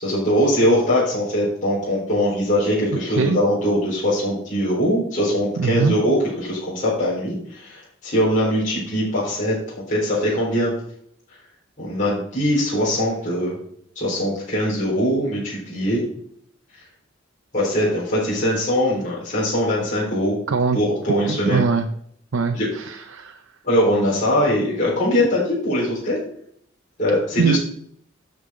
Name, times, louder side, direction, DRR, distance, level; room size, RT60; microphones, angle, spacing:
voice 1, 0.0-6.2 6.4-9.6 9.9-10.7 11.8-13.5 14.0-16.0 17.5-20.4 20.7-21.6 22.5-22.7 23.6-26.2 27.0-27.6, equal, 40° left, -7 dB, 4.2 m, -21 dB
voice 2, 5.6-6.0 20.5-20.8 21.3-21.9 22.3-23.4 27.4-27.6, right 4 dB, 75° right, 6 dB, 0.6 m, -21 dB
12.5 x 5.4 x 3.8 m, 0.66 s
head